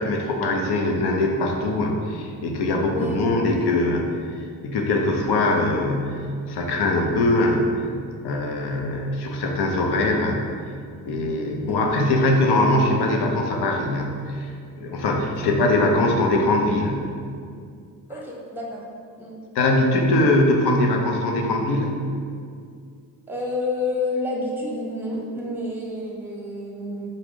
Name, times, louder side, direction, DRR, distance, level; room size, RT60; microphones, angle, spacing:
voice 1, 0.0-7.8 8.2-10.5 11.1-17.1 19.5-22.0, left 2 dB, 55° left, 1 dB, 0.7 m, -22 dB
voice 2, 2.9-3.2 3.5-3.8 11.7-11.9 15.4-15.5 18.1-18.8 19.2-19.4 23.3-27.1, left 2 dB, 5° right, -3 dB, 0.9 m, -29 dB
3.8 x 2.4 x 3.6 m, 2.3 s
hypercardioid pair, 45°, 48 cm